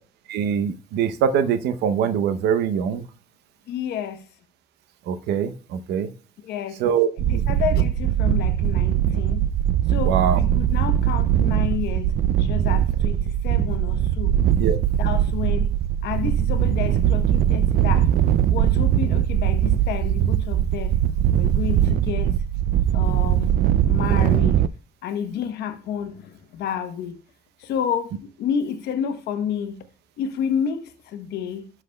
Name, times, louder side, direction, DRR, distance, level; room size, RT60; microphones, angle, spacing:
voice 1, 0.3-3.0 5.1-6.1 6.8-7.4 10.1-10.4 14.6-14.8, right 8 dB, 80° right, 0.8 m, -23 dB
voice 2, 3.7-4.2 6.4-6.8 7.3-9.5 9.9-12.1 12.4-14.3 15.0-15.7 16.0-18.1 18.5-21.0 21.3-22.3 22.9-23.5 23.8-24.6 25.0-27.2 27.6-28.1 28.4-29.8 30.2-31.7, left 8 dB, 75° left, 1.0 m, -30 dB
sound 1, 7.2-24.7, right 11 dB, 60° right, 0.4 m, -21 dB
12.0 x 5.9 x 2.2 m
cardioid pair, 110°, 17 cm